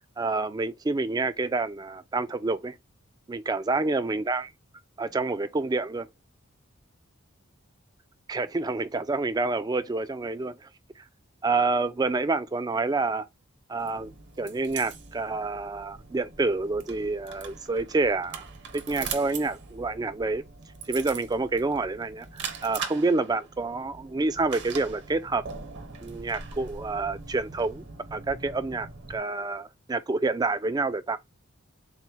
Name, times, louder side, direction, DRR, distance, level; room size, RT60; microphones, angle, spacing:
voice 1, 0.2-2.8 3.3-4.5 5.0-6.1 8.3-10.6 11.4-13.3 13.7-14.1 14.4-18.4 18.7-20.4 20.9-25.4 26.0-27.8 28.1-31.2, right 3 dB, 20° right, 0.3 m, -28 dB
sound 1, 13.8-29.2, right 5 dB, 55° right, 0.8 m, -41 dB
4.0 x 2.1 x 4.4 m
head